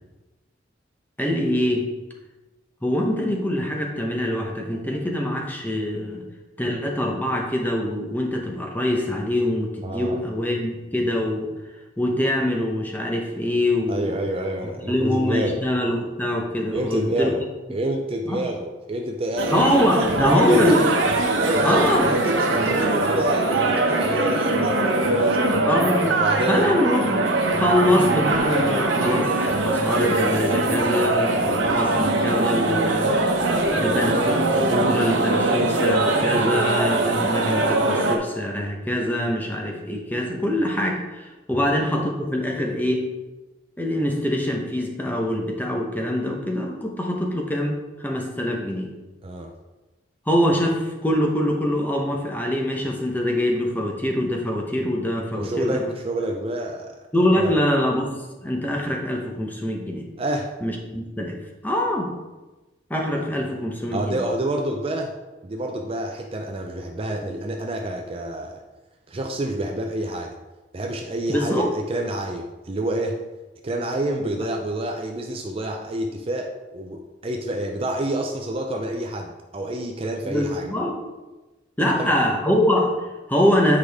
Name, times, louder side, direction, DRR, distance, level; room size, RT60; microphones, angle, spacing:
voice 1, 1.2-1.9 2.8-6.2 6.6-11.5 12.0-14.2 14.9-17.3 18.3-18.4 19.5-20.8 21.6-22.1 25.7-26.2 26.5-29.3 29.6-33.2 33.8-43.1 43.8-48.9 50.3-55.8 57.1-60.0 60.6-61.4 61.6-62.1 62.9-64.2 71.3-71.7 74.2-74.3 80.2-81.0 81.8-83.8, left 1 dB, 10° left, 1 dB, 0.9 m, -24 dB
voice 2, 9.8-10.2 13.9-15.6 16.7-17.4 17.7-20.9 21.4-25.4 26.2-26.7 33.7-34.1 41.5-41.7 49.2-49.5 55.3-57.0 57.4-57.6 60.2-60.5 63.9-65.1 65.4-68.6 69.1-70.3 70.7-73.2 73.6-80.7 81.8-82.2, right 1 dB, 30° right, 2 dB, 0.5 m, -28 dB
sound 1, 19.4-38.2, right 2 dB, 90° right, 0.9 m, -22 dB
8.3 x 4.9 x 3.5 m, 1.1 s
head